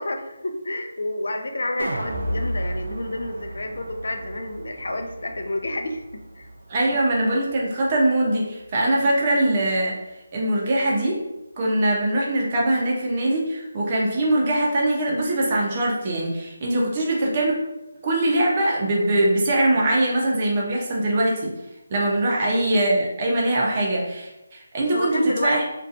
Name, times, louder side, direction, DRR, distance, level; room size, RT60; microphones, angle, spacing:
voice 1, 0.0-6.0 6.4-6.5 24.9-25.6, left 1 dB, 80° left, 5 dB, 0.4 m, -29 dB
sound 1, 1.8-8.0 8.4-8.5, right 1 dB, 80° right, 0.4 m, -33 dB
voice 2, 6.7-9.9 10.3-11.2 11.6-17.5 18.0-21.4 21.9-25.6, right 1 dB, 25° right, -3 dB, 0.5 m, -22 dB
2.6 x 2.3 x 2.5 m, 0.96 s
figure-of-eight pair, 170°, 0 cm